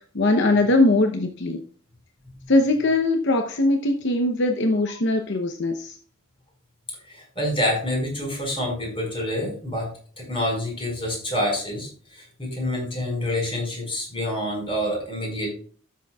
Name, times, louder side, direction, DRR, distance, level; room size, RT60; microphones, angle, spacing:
voice 1, 0.1-1.6 2.5-6.0, left 2 dB, 60° left, 4 dB, 0.8 m, -21 dB
voice 2, 7.1-9.9 10.2-15.5, left 1 dB, 25° left, -1 dB, 5.0 m, -27 dB
14.0 x 7.5 x 2.4 m, 0.44 s
head